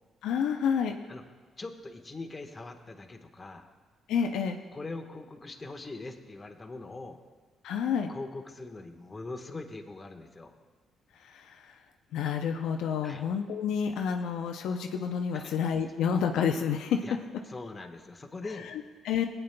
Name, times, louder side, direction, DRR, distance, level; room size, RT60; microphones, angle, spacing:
voice 1, 0.2-1.0 4.1-4.6 7.6-8.1 11.2-11.7 12.1-17.0 18.7-19.3, left 7 dB, 85° left, 4 dB, 0.6 m, -29 dB
voice 2, 1.6-3.7 4.7-7.2 8.1-10.5 13.0-13.2 15.3-15.5 17.0-17.2 17.5-18.7, left 3 dB, 25° left, 3 dB, 1.2 m, -42 dB
20.0 x 9.1 x 2.2 m, 1.4 s
cardioid pair, 90°, 0 cm